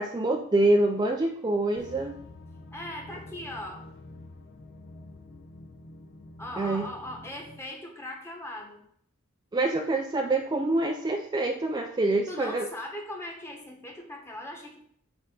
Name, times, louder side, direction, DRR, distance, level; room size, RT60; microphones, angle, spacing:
voice 1, 0.0-2.1 6.6-6.8 9.5-12.7, right 2 dB, 20° right, 2 dB, 0.4 m, -26 dB
sound 1, 1.8-7.6, left 2 dB, 55° left, 0.8 m, -47 dB
voice 2, 2.7-3.8 6.4-8.8 12.3-14.8, left 1 dB, 10° left, 0 dB, 1.3 m, -39 dB
7.5 x 3.6 x 5.0 m, 0.68 s
head